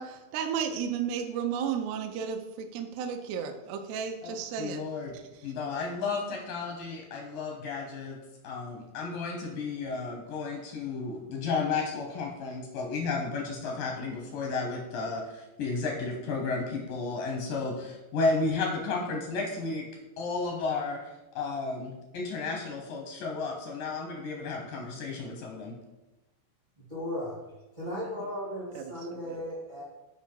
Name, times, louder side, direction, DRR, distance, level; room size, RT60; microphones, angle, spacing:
voice 1, 0.0-4.8 28.8-28.9, right 7 dB, 80° right, 4 dB, 2.4 m, -33 dB
voice 2, 4.2-5.2 5.4-8.2 8.4-19.9 20.2-25.7, left 4 dB, 85° left, 1 dB, 1.9 m, -33 dB
voice 3, 26.8-29.8, left 1 dB, 35° right, -7 dB, 0.6 m, -36 dB
8.2 x 4.8 x 4.5 m, 1.0 s
omnidirectional pair, 5.2 m